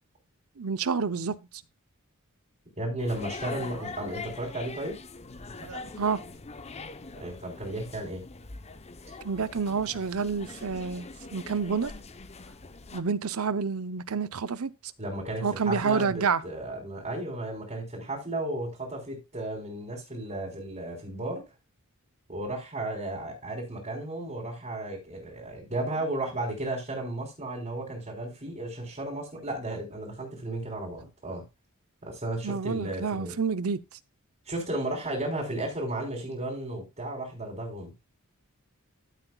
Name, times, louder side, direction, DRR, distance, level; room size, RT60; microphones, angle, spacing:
voice 1, 0.6-1.4 5.6-6.2 9.2-11.1 11.3-11.9 12.9-14.7 15.4-16.4 32.4-33.8, right 5 dB, 85° right, 0.7 m, -28 dB
voice 2, 2.8-5.0 7.2-8.2 15.0-21.4 22.3-31.4 32.0-33.3 34.5-37.9, right 1 dB, 35° right, 3.7 m, -34 dB
sound 1, 3.0-13.0, left 4 dB, 30° left, 0.8 m, -43 dB
13.5 x 7.9 x 2.3 m
head